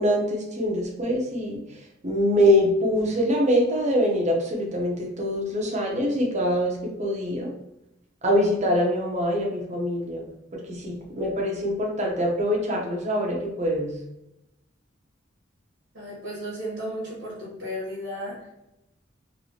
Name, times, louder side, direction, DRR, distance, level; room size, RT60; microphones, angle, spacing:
voice 1, 0.0-1.6 2.0-7.5 8.2-14.0, equal, 40° right, -1 dB, 0.8 m, -24 dB
voice 2, 15.9-18.5, equal, 65° right, -7 dB, 1.1 m, -34 dB
3.1 x 2.9 x 2.8 m, 0.86 s
head